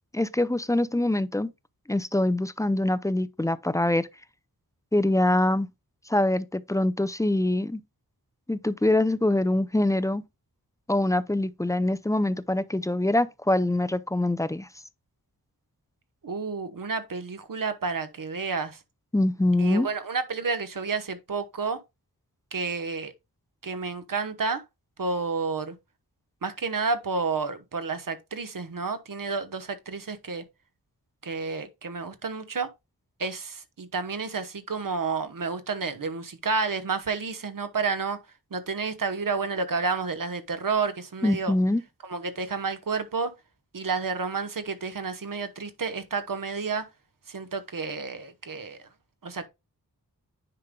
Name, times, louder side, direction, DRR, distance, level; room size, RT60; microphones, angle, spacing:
voice 1, 0.1-1.5 1.9-4.1 4.9-5.7 6.1-7.8 8.5-10.2 10.9-14.7 19.1-19.9 41.2-41.8, left 1 dB, 10° left, 0.4 m, -24 dB
voice 2, 16.2-18.8 19.6-21.8 22.5-23.1 23.6-24.6 25.0-25.7 26.4-30.4 31.2-32.7 33.2-38.2 38.5-41.5 42.0-43.3 43.7-46.8 47.3-48.8 49.2-49.5, right 4 dB, 60° right, 1.1 m, -30 dB
9.7 x 5.2 x 2.2 m
wide cardioid pair, 90°, 37 cm